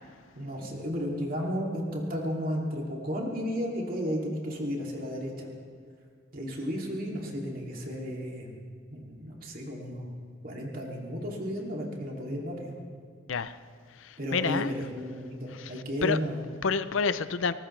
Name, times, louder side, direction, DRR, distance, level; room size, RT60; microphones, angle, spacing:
voice 1, 0.3-5.5 6.3-8.6 8.9-10.1 10.4-12.8 14.2-16.4, equal, 45° right, -1 dB, 2.7 m, -33 dB
voice 2, 14.3-14.7 15.6-15.7 16.0-16.2 16.6-17.5, left 5 dB, 75° left, 14 dB, 0.5 m, -27 dB
22.0 x 19.5 x 3.3 m, 2.2 s
head